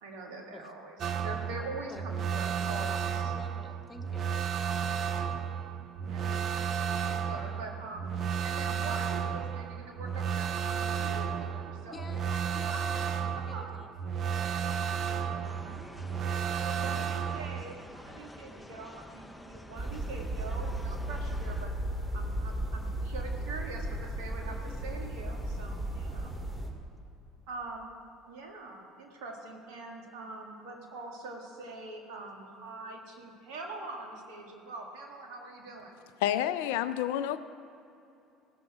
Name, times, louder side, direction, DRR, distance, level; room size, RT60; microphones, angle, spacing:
voice 1, 0.0-3.3 6.0-8.1 8.4-12.1 12.7-12.8 13.2-13.7 16.4-21.7 22.1-26.3 27.5-28.0 28.3-36.0, right 3 dB, 70° right, 1 dB, 1.9 m, -44 dB
sound 1, 1.0-17.6, right 7 dB, 50° right, 0.6 m, -33 dB
voice 2, 3.2-4.3 11.9-15.3 20.9-21.1 24.5-25.1 25.4-25.9, left 2 dB, 25° left, 5 dB, 1.4 m, -52 dB
sound 2, 15.4-21.7, left 1 dB, 5° left, 0.8 m, -49 dB
sound 3, 19.7-26.7, right 1 dB, 15° right, 2.3 m, -35 dB
voice 3, 36.2-37.4, left 11 dB, 75° left, 13 dB, 0.4 m, -29 dB
17.0 x 7.2 x 4.9 m, 2.7 s
hypercardioid pair, 65°, 0 cm